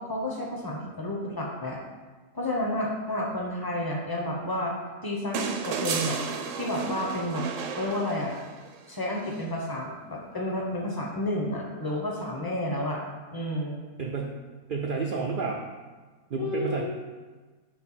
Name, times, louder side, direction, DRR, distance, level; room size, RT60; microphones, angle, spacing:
voice 1, 0.0-1.8 2.3-4.7 5.0-6.2 6.6-7.5 7.7-8.4 8.8-13.0 13.3-13.8 16.4-16.8, left 1 dB, 20° left, -1 dB, 0.6 m, -31 dB
sound 1, 5.3-8.7 10.2-10.3, right 6 dB, 65° right, 0.9 m, -32 dB
voice 2, 14.0-14.4 14.7-15.6 16.3-16.8, right 4 dB, 80° right, 0 dB, 0.4 m, -30 dB
4.6 x 4.4 x 5.7 m, 1.3 s
omnidirectional pair, 1.6 m